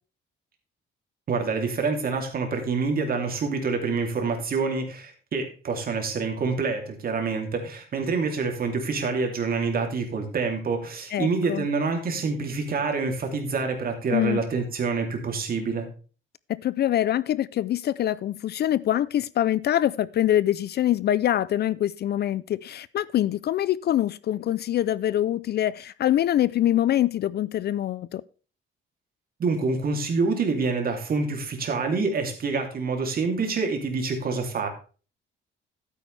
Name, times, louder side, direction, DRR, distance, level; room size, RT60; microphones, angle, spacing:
voice 1, 1.3-15.9 29.4-34.7, right 4 dB, 45° right, 2.9 m, -27 dB
voice 2, 11.1-11.7 14.1-14.4 16.5-28.2, left 12 dB, 50° left, 0.4 m, -24 dB
12.0 x 9.2 x 3.3 m
cardioid pair, 145°, 21 cm